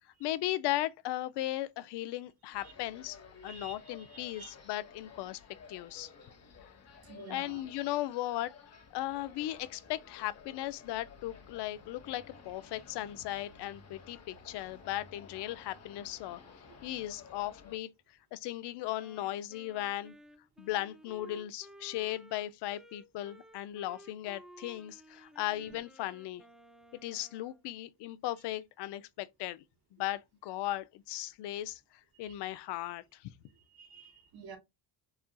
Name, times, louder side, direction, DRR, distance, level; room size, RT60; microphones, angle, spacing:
voice 1, 0.2-3.2 3.4-5.4 5.7-6.1 7.3-8.5 8.9-16.4 16.8-17.9 18.3-20.1 20.6-26.4 27.0-29.6 29.9-31.8 32.2-33.0, left 15 dB, 70° left, 0.5 m, -37 dB
sound 1, 2.5-17.8, left 5 dB, 35° left, 1.0 m, -54 dB
voice 2, 3.4-4.5 7.0-7.7 25.6-25.7 32.2-32.4 33.5-34.6, right 4 dB, 55° right, 1.2 m, -50 dB
Wind instrument woodwind instrument, 19.0-27.6, right 1 dB, ahead, 0.4 m, -56 dB
4.2 x 2.3 x 2.2 m
cardioid pair, 95°, 43 cm